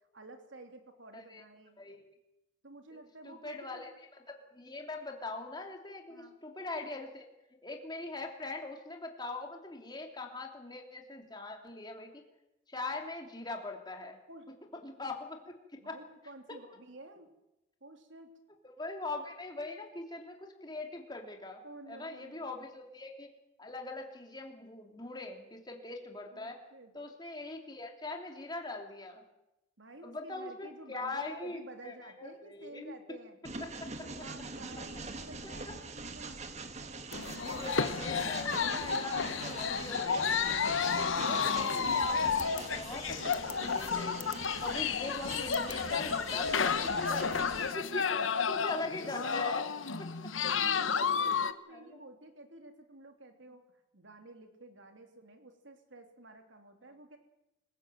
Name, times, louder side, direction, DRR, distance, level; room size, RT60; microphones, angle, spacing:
voice 1, 0.1-1.7 2.6-3.8 6.1-6.4 14.3-14.5 15.8-17.3 17.8-18.3 21.6-22.4 26.3-26.9 29.8-33.4 34.0-36.4 39.2-39.7 48.4-49.3 49.8-53.6 53.9-57.2, right 2 dB, 75° right, 5 dB, 3.2 m, -52 dB
voice 2, 1.1-1.4 1.8-2.1 3.2-7.3 7.6-12.2 12.7-14.2 14.8-15.5 15.8-16.0 18.6-23.3 23.6-26.6 26.9-29.2 30.0-33.0 33.8-33.9 35.4-35.7 37.4-40.5 41.0-44.3 44.6-47.2 47.6-48.1 48.4-49.6 50.0-50.1 51.0-51.1 51.7-52.0, left 2 dB, 20° left, 2 dB, 2.9 m, -42 dB
Train, 33.4-47.7, right 3 dB, 35° right, 1.5 m, -43 dB
sound 1, 37.1-51.5, left 6 dB, 90° left, 1.1 m, -31 dB
26.0 x 16.5 x 7.7 m, 0.93 s
head